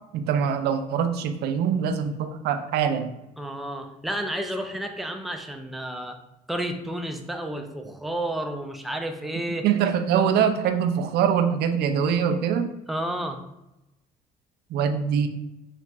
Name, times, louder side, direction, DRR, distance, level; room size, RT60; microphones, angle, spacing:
voice 1, 0.1-3.1 9.5-12.7 14.7-15.3, right 7 dB, 75° right, 8 dB, 0.5 m, -23 dB
voice 2, 3.4-6.2 6.5-9.7 12.9-13.4, right 1 dB, ahead, 4 dB, 0.4 m, -31 dB
4.1 x 2.4 x 3.3 m, 0.92 s
cardioid pair, 110°, 17 cm